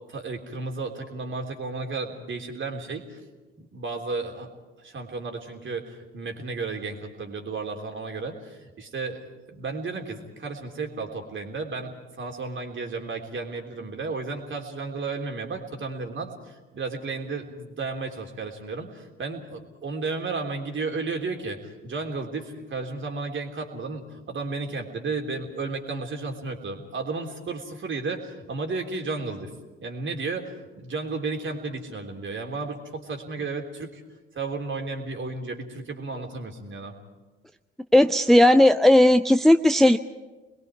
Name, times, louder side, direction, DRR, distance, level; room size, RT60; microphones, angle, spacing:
voice 1, 0.1-3.2 3.6-4.5 4.8-9.2 9.5-29.5 29.8-34.0 34.3-36.9, right 3 dB, 40° right, 2 dB, 3.4 m, -33 dB
voice 2, 37.9-40.0, left 1 dB, ahead, 10 dB, 0.6 m, -16 dB
29.0 x 21.5 x 4.8 m, 1.2 s
figure-of-eight pair, 45°, 30 cm